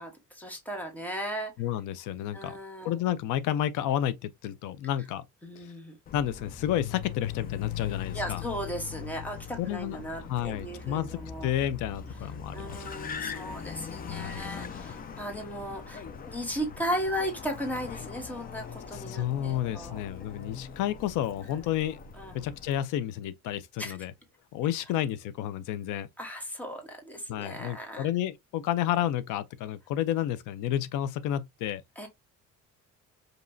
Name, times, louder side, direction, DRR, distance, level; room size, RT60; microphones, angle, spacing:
voice 1, 0.0-1.5 2.3-2.9 5.4-6.0 8.1-11.5 12.5-20.0 22.2-22.3 23.8-23.9 26.2-28.1 32.0-32.1, equal, 5° left, 1.2 m, -36 dB
voice 2, 1.6-2.6 2.8-5.2 5.6-5.7 6.1-8.4 9.6-10.0 10.3-12.8 14.1-14.5 18.9-22.0 22.3-24.1 24.5-26.1 27.3-31.8, left 11 dB, 85° left, 0.6 m, -31 dB
Car, 6.1-22.8, left 7 dB, 30° left, 0.5 m, -41 dB
5.2 x 3.0 x 2.6 m
cardioid pair, 175°, 30 cm